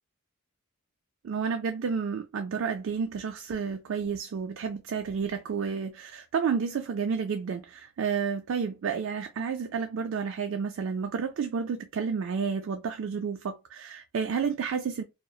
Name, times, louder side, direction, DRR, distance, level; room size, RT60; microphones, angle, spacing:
voice 1, 1.2-15.0, right 6 dB, 60° right, 0.3 m, -31 dB
2.7 x 2.0 x 2.2 m
head